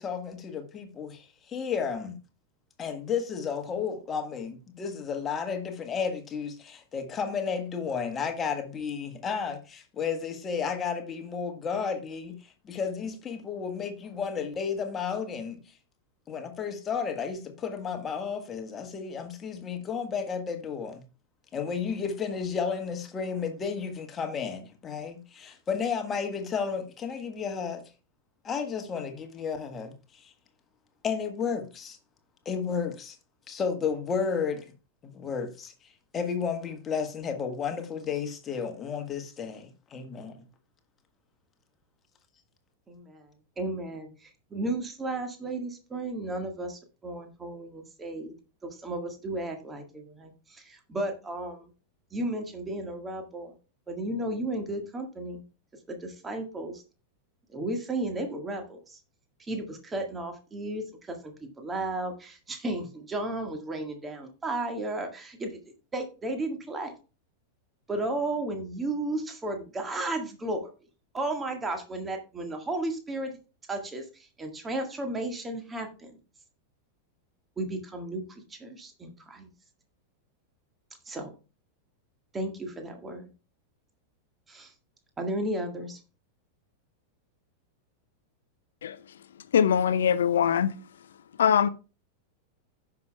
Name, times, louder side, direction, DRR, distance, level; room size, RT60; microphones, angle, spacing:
voice 1, 0.0-2.2 2.8-15.6 16.3-21.0 21.5-27.8 28.4-30.3 31.0-32.0 32.4-33.2 33.5-34.7 35.0-35.7 36.1-40.4, left 6 dB, 25° left, 1.5 m, -32 dB
voice 2, 42.9-43.3 43.6-48.4 48.6-51.7 52.1-53.5 53.9-55.4 55.9-56.8 57.5-59.0 59.4-65.6 65.9-66.9 67.9-70.7 71.1-73.3 73.7-76.2 77.6-79.5 81.1-81.3 82.3-83.3 84.5-84.7 85.2-86.0, right 2 dB, 15° right, 1.7 m, -34 dB
voice 3, 89.5-90.7 91.4-91.7, left 8 dB, 65° left, 0.6 m, -22 dB
15.5 x 5.9 x 2.3 m
figure-of-eight pair, 90°, 0 cm